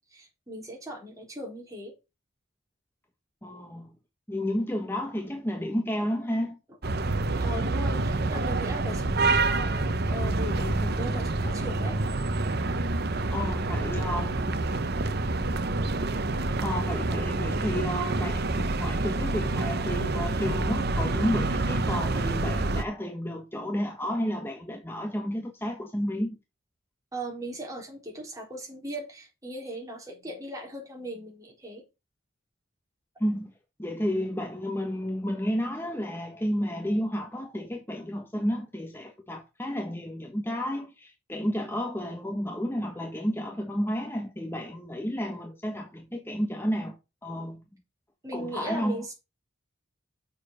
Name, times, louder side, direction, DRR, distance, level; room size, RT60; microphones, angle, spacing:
voice 1, 0.0-1.9 7.4-12.0 27.1-31.8 48.2-49.1, right 1 dB, 15° right, 4.0 m, -38 dB
voice 2, 3.4-3.9 4.3-6.6 13.3-14.5 16.6-26.4 33.2-33.5 33.8-47.0 47.2-47.6 48.3-49.1, equal, 10° left, 1.2 m, -31 dB
sound 1, 6.8-22.8, right 2 dB, 50° right, 0.9 m, -27 dB
7.3 x 6.7 x 6.4 m
head